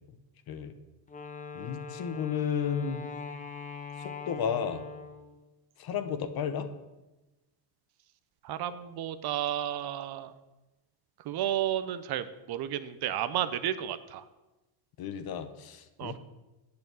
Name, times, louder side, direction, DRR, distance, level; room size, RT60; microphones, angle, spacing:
Wind instrument woodwind instrument, 1.1-5.4, left 5 dB, 15° left, 1.1 m, -42 dB
voice 1, 1.5-3.0 4.0-4.8 5.8-6.7 15.0-16.2, left 7 dB, 45° left, 10 dB, 1.1 m, -33 dB
voice 2, 8.4-10.3 11.2-14.2 16.0-16.2, right 11 dB, 50° right, 13 dB, 0.8 m, -32 dB
8.5 x 6.9 x 8.0 m, 1.1 s
cardioid pair, 110°, 50 cm